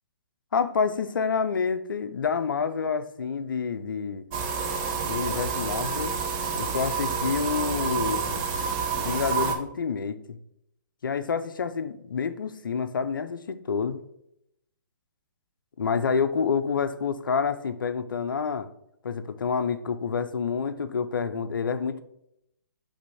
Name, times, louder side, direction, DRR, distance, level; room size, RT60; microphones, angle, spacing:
voice 1, 0.5-4.2 5.0-6.1 6.5-8.4 9.0-10.4 11.0-14.0 15.8-18.7 19.0-22.0, left 6 dB, 75° left, 10 dB, 0.6 m, -28 dB
sound 1, 4.3-9.6, right 5 dB, 30° right, 0.8 m, -28 dB
5.1 x 3.5 x 5.5 m, 0.79 s
hypercardioid pair, 135°, 11 cm